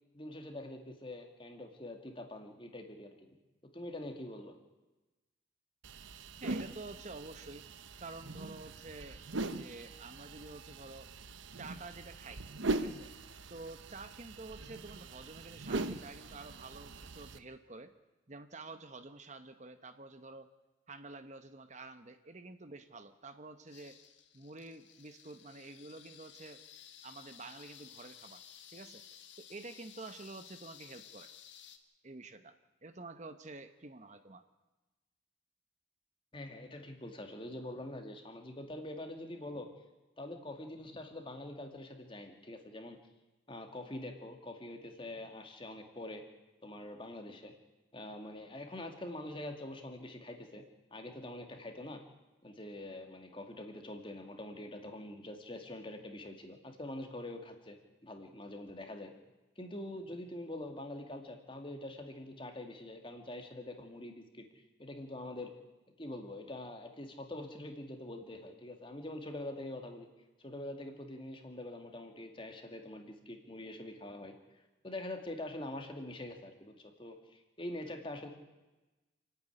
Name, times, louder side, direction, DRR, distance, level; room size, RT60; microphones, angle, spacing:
voice 1, 0.1-3.1 3.7-4.6 36.3-39.7 40.2-43.0 43.5-46.2 46.6-47.5 47.9-50.6 50.9-52.0 52.4-59.1 59.6-64.5 64.8-65.5 66.0-70.1 70.4-74.3 74.8-78.3, left 1 dB, 25° left, 4 dB, 2.2 m, -44 dB
sound 1, 5.8-17.4, right 2 dB, 80° right, 1.0 m, -41 dB
voice 2, 6.4-7.6 8.0-9.2 9.5-11.1 11.6-12.4 12.7-13.1 13.5-17.9 18.3-20.5 20.9-24.0 24.3-26.6 27.0-28.4 28.7-29.0 29.4-31.3 32.0-32.5 32.8-34.4, right 3 dB, 40° right, 9 dB, 1.0 m, -49 dB
sound 2, 23.7-31.8, left 9 dB, 70° left, 1.5 m, -55 dB
28.0 x 9.4 x 10.0 m, 1.1 s
head